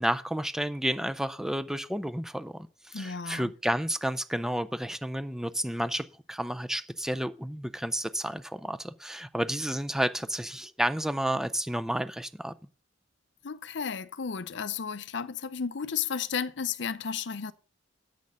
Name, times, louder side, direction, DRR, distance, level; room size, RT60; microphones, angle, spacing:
voice 1, 0.0-2.6 2.8-12.5, equal, 5° right, 0.4 m, -31 dB
voice 2, 2.9-3.5 13.4-17.5, left 6 dB, 65° left, 0.6 m, -33 dB
8.5 x 6.4 x 6.5 m
head